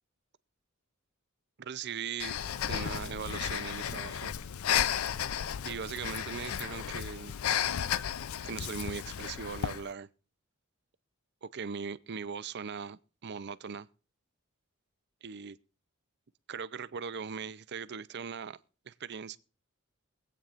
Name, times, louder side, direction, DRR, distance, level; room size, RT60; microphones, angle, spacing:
voice 1, 1.6-2.4 2.7-4.3 5.6-7.4 8.4-10.1 11.4-13.9 15.2-15.6 16.5-18.6 18.9-19.4, right 6 dB, 55° right, 0.6 m, -39 dB
Breathing, 2.2-9.9, left 9 dB, 85° left, 0.5 m, -33 dB
23.5 x 8.7 x 2.5 m
head